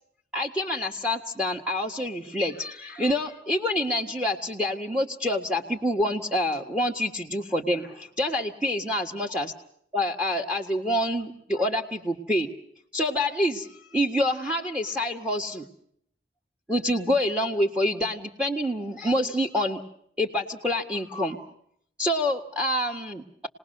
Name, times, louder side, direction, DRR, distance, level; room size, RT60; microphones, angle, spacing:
voice 1, 0.3-9.5 9.9-12.5 12.9-15.6 16.7-19.8 20.2-21.5 22.0-23.5, left 1 dB, 5° right, 2 dB, 1.6 m, -27 dB
28.5 x 19.5 x 6.7 m, 0.68 s
head